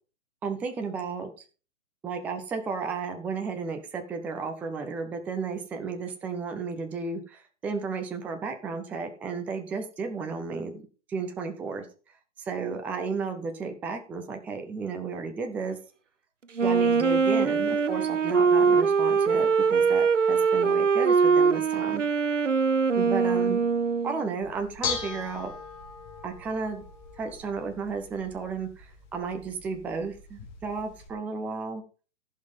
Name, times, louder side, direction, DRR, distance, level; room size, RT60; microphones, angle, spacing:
voice 1, 0.4-1.3 2.0-10.8 11.1-11.9 12.4-15.8 16.6-22.0 22.9-23.6 24.0-25.5 26.2-26.8 27.2-31.8, right 4 dB, 5° right, 5 dB, 0.5 m, -33 dB
Wind instrument woodwind instrument, 16.6-24.2, right 5 dB, 90° right, 0.6 m, -22 dB
Bell / Dishes pots and pans, 24.4-31.1, left 5 dB, 40° left, 2.5 m, -39 dB
14.5 x 5.6 x 5.2 m, 0.37 s
figure-of-eight pair, 115°, 36 cm